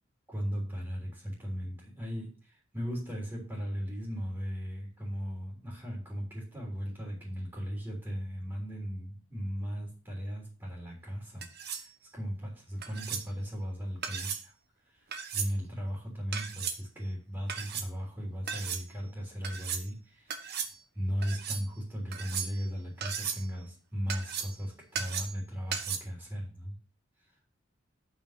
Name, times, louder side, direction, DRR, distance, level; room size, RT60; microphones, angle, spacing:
voice 1, 0.3-14.5 14.8-20.5 20.9-26.7, equal, 15° right, -3 dB, 3.5 m, -37 dB
sound 1, 11.4-11.9 12.8-13.3 14.0-14.5 15.1-15.5 16.3-16.8 17.5-17.9 18.5-18.8 19.4-19.9 20.3-20.7 21.2-21.6 22.1-22.7 23.0-23.5 24.1-24.6 24.9-25.4 25.7-26.0, right 7 dB, 55° right, 1.3 m, -36 dB
8.7 x 5.8 x 5.9 m, 0.37 s
head